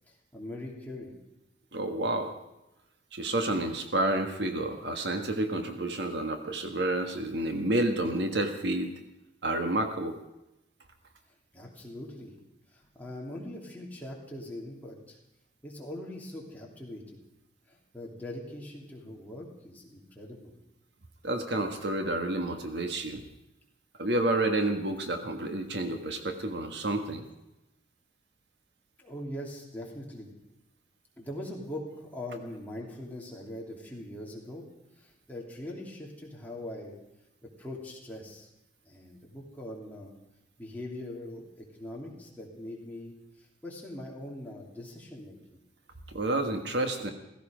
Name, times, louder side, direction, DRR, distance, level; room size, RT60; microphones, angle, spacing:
voice 1, 0.1-1.1 11.5-12.3 12.7-15.2 15.6-17.2 17.7-20.5 29.0-30.3 31.2-34.6 35.0-36.9 37.4-38.5 38.9-40.1 40.6-45.4, left 1 dB, 10° left, -3 dB, 3.0 m, -42 dB
voice 2, 1.7-2.3 3.1-8.9 9.4-10.1 21.2-23.2 24.0-27.2 46.1-47.1, right 1 dB, 65° right, 6 dB, 1.5 m, -29 dB
15.5 x 15.5 x 5.1 m, 0.93 s
head